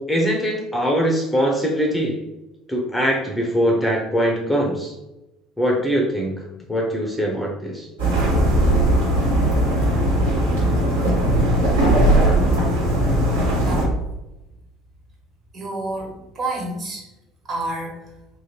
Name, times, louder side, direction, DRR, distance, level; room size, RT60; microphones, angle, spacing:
voice 1, 0.1-2.2 2.7-4.9 5.6-6.4 6.7-7.9, equal, 10° left, 0 dB, 0.5 m, -22 dB
sound 1, 8.0-13.8, right 1 dB, 75° right, 1.1 m, -18 dB
voice 2, 15.5-17.0 17.5-17.9, right 2 dB, 40° right, -3 dB, 1.2 m, -28 dB
2.7 x 2.6 x 2.8 m, 0.97 s
figure-of-eight pair, 60°, 0 cm